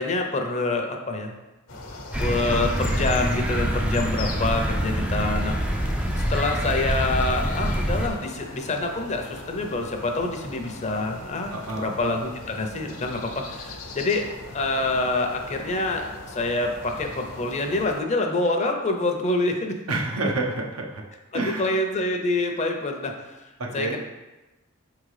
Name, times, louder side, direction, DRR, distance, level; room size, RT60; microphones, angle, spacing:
voice 1, 0.0-1.3 2.2-5.9 6.3-14.3 14.5-19.8 21.3-23.3 23.7-24.0, left 2 dB, 30° left, 3 dB, 0.7 m, -26 dB
sound 1, 1.7-18.0, left 2 dB, 70° left, 1.0 m, -40 dB
sound 2, 2.1-8.1, equal, 5° right, 0.4 m, -25 dB
voice 2, 11.5-11.9 19.9-21.0 21.3-21.7 23.6-24.0, right 2 dB, 85° right, 1 dB, 1.1 m, -28 dB
5.8 x 3.8 x 4.9 m, 1.1 s
head